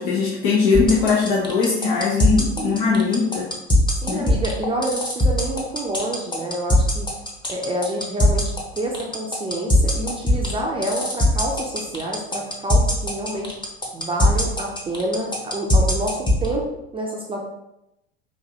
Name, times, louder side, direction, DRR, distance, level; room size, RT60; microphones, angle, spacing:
voice 1, 0.0-3.5 4.1-4.2, left 5 dB, 60° left, -3 dB, 0.9 m, -20 dB
sound 1, 0.7-16.5, left 1 dB, 15° left, 1.0 m, -19 dB
voice 2, 4.0-7.1 7.5-13.5 13.9-16.6 16.9-17.4, right 1 dB, 15° right, -1 dB, 0.6 m, -28 dB
5.3 x 2.6 x 2.8 m, 0.86 s
hypercardioid pair, 85°, 34 cm